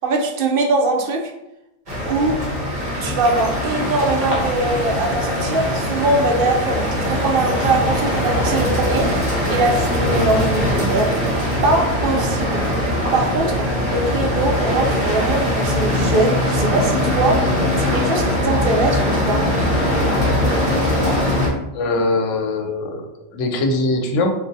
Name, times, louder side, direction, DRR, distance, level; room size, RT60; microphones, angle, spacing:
voice 1, 0.0-1.3 2.0-2.4 3.0-11.1 11.6-12.6 13.1-17.5 17.8-19.4, right 2 dB, 60° right, 1 dB, 0.6 m, -21 dB
sound 1, 1.9-21.5, left 1 dB, 40° right, 0.9 m, -21 dB
voice 2, 21.7-23.1 23.3-24.3, left 2 dB, 75° left, 4 dB, 0.9 m, -21 dB
2.6 x 2.3 x 3.8 m, 0.89 s
omnidirectional pair, 1.3 m